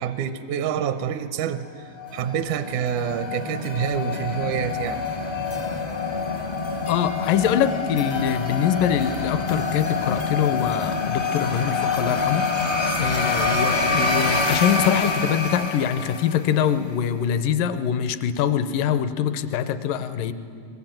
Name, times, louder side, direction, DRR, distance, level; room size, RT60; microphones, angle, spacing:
voice 1, 0.0-1.7 2.1-5.1, right 8 dB, 75° right, 10 dB, 1.9 m, -27 dB
sound 1, 2.0-16.6, left 4 dB, 45° left, 0.6 m, -26 dB
voice 2, 6.9-12.7 13.0-20.3, left 8 dB, 75° left, 12 dB, 2.4 m, -24 dB
23.5 x 21.0 x 8.9 m, 2.4 s
omnidirectional pair, 4.1 m